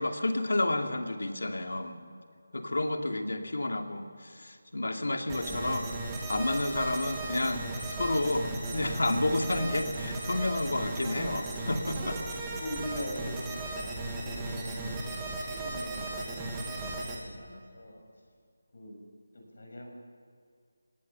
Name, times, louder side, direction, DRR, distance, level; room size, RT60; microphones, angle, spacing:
voice 1, 0.0-2.0 2.5-4.1 4.4-5.9 6.3-7.6 7.9-12.2, left 2 dB, 90° left, 4 dB, 2.5 m, -30 dB
voice 2, 5.3-5.6 12.4-14.9 15.4-18.0 18.7-19.0 19.3-19.9, left 1 dB, 50° left, 2 dB, 6.4 m, -42 dB
sound 1, 5.3-17.2, right 2 dB, 10° right, 1.6 m, -36 dB
27.5 x 18.0 x 6.9 m, 2.2 s
figure-of-eight pair, 180°, 0 cm